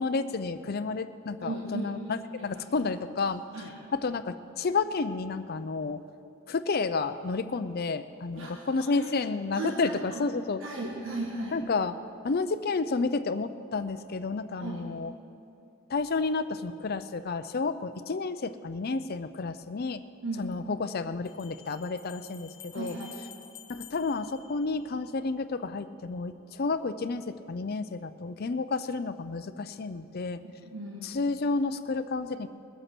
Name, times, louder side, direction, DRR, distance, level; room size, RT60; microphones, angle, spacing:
voice 1, 0.0-3.4 3.9-6.0 6.5-10.6 11.5-12.0 12.2-15.1 15.9-20.0 20.4-22.9 23.7-30.4 31.0-32.5, left 4 dB, 50° left, 10 dB, 0.5 m, -31 dB
voice 2, 1.4-1.9 2.4-2.5 2.8-2.9 3.5-3.7 8.3-9.1 9.5-10.2 10.6-11.6 14.5-14.9 20.2-20.5 22.7-23.1 30.4-31.1, right 2 dB, 70° right, -1 dB, 1.5 m, -37 dB
Bell, 19.6-19.7 21.2-25.2, left 10 dB, 75° left, 1.3 m, -50 dB
21.0 x 8.1 x 6.0 m, 2.5 s
head